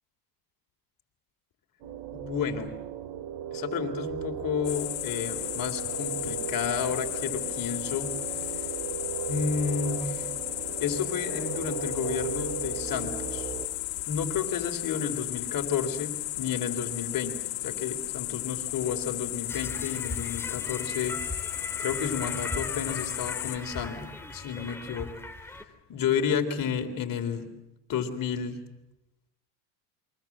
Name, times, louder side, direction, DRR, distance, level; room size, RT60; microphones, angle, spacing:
sound 1, 1.8-13.7, right 9 dB, 70° right, 2.6 m, -37 dB
voice 1, 2.1-2.8 3.5-8.7 9.3-10.3 10.8-13.5 14.1-21.2 21.8-25.1 25.9-27.5 27.9-28.6, left 7 dB, 40° left, 5 dB, 3.8 m, -31 dB
sound 2, 4.6-23.6, left 17 dB, 90° left, 2.1 m, -34 dB
sound 3, 19.5-25.6, left 1 dB, 5° left, 2.5 m, -39 dB
28.5 x 23.5 x 7.4 m, 0.96 s
supercardioid pair, 100°, 49 cm